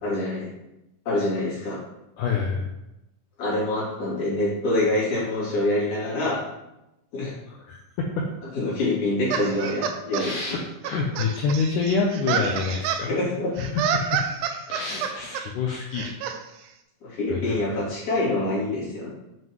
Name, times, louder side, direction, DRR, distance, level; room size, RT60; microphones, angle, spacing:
voice 1, 0.0-0.5 1.1-1.8 3.4-6.4 7.1-7.4 8.5-10.3 13.1-13.5 17.0-19.1, left 1 dB, 55° left, -9 dB, 3.9 m, -25 dB
voice 2, 2.2-2.7 7.5-7.8 10.2-13.1 13.6-14.2 14.7-16.1 17.3-17.6, left 5 dB, 80° left, 0 dB, 1.8 m, -27 dB
sound 1, 9.3-10.3 10.8-13.1 13.6-15.4 15.9-16.4, right 7 dB, 90° right, 1.8 m, -28 dB
7.6 x 5.4 x 3.1 m, 0.93 s
omnidirectional pair, 4.3 m